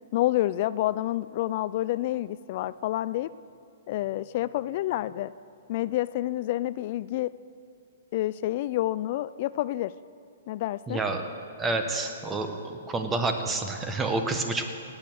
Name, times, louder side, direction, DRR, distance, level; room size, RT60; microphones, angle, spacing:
voice 1, 0.1-3.3 3.9-5.3 5.7-7.3 8.1-9.9 10.5-11.0, left 15 dB, 50° left, 17 dB, 0.3 m, -28 dB
voice 2, 10.9-11.2 11.6-14.6, right 3 dB, 15° right, 6 dB, 1.4 m, -29 dB
17.0 x 8.8 x 6.4 m, 2.4 s
hypercardioid pair, 125°, 0 cm